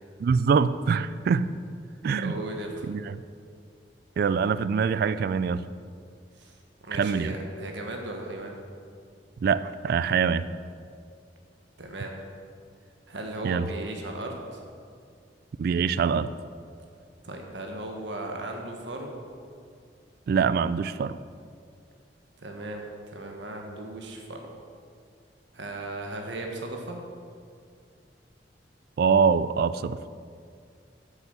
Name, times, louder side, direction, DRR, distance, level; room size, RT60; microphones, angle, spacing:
voice 1, 0.2-1.5 2.0-2.3 2.9-3.2 4.2-5.7 7.0-7.3 9.4-10.4 13.4-13.7 15.6-16.3 20.3-21.2 29.0-30.0, right 6 dB, 60° right, 15 dB, 0.3 m, -24 dB
voice 2, 1.9-2.9 6.4-6.5 6.8-8.5 11.8-12.1 13.1-14.6 17.2-19.2 22.4-24.5 25.5-27.0, right 2 dB, 90° right, 2 dB, 1.3 m, -36 dB
8.2 x 7.1 x 6.9 m, 2.2 s
head